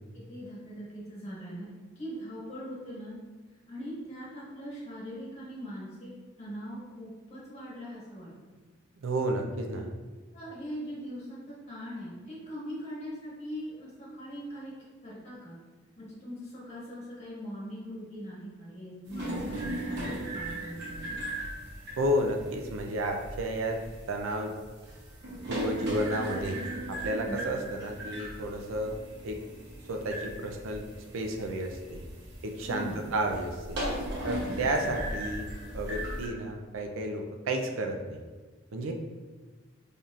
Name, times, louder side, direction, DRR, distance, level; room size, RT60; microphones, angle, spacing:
voice 1, 0.3-1.7 2.0-3.2 3.7-6.1 6.4-8.3 10.3-14.7 15.0-15.6 16.0-21.2 27.2-27.5 32.7-33.1, equal, 30° left, -7 dB, 1.4 m, -41 dB
voice 2, 9.0-9.8 22.0-23.8 24.1-24.6 25.5-26.6 26.9-29.0 29.2-29.4 29.9-30.8 31.1-32.0 32.4-33.8 34.2-35.5 35.7-38.2 38.7-38.9, right 1 dB, 75° right, 3 dB, 0.4 m, -31 dB
sound 1, 19.1-36.3, right 1 dB, 55° right, 0.9 m, -38 dB
4.1 x 3.4 x 2.4 m, 1.3 s
head